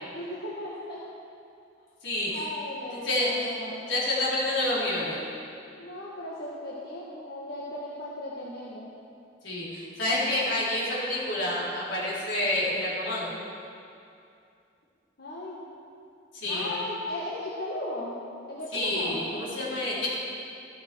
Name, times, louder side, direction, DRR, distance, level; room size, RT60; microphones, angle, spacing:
voice 1, 0.1-1.0 2.3-3.9 5.8-8.9 15.2-15.7 16.5-18.2 18.5-19.4, left 1 dB, 55° left, -6 dB, 1.6 m, -36 dB
voice 2, 2.0-2.4 3.0-3.5 3.9-5.2 9.4-13.3 16.3-16.8 18.7-20.1, left 1 dB, 80° left, -7 dB, 4.2 m, -28 dB
14.0 x 13.0 x 4.7 m, 2.5 s
head